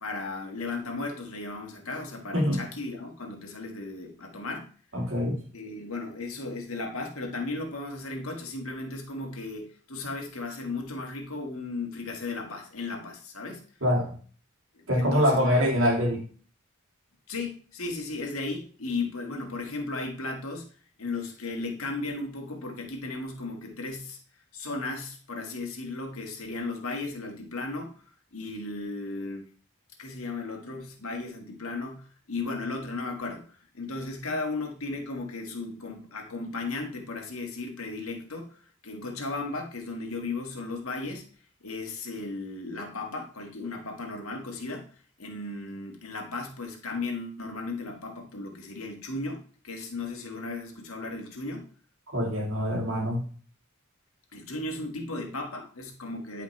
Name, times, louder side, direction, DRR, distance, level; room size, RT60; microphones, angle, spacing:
voice 1, 0.0-4.7 5.5-13.6 14.7-15.7 17.3-20.7 21.0-24.2 24.5-28.0 28.3-29.5 30.0-38.6 38.8-41.3 41.6-44.9 45.2-51.7 54.3-56.4, left 3 dB, 80° left, 2 dB, 1.7 m, -35 dB
voice 2, 4.9-5.4 13.8-14.1 14.9-16.2 52.1-53.2, equal, 65° right, 0 dB, 2.3 m, -24 dB
11.0 x 5.1 x 3.2 m, 0.42 s
head